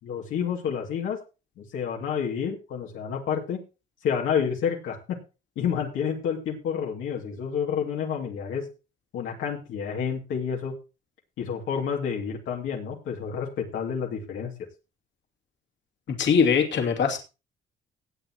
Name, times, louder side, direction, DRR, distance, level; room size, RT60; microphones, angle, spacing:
voice 1, 0.0-1.2 1.6-3.6 4.0-5.2 5.6-8.6 9.1-10.7 11.4-14.5, left 7 dB, 85° left, 2.6 m, -29 dB
voice 2, 16.1-17.2, left 6 dB, 65° left, 2.7 m, -22 dB
17.5 x 8.2 x 3.0 m
cardioid pair, 90°, 20 cm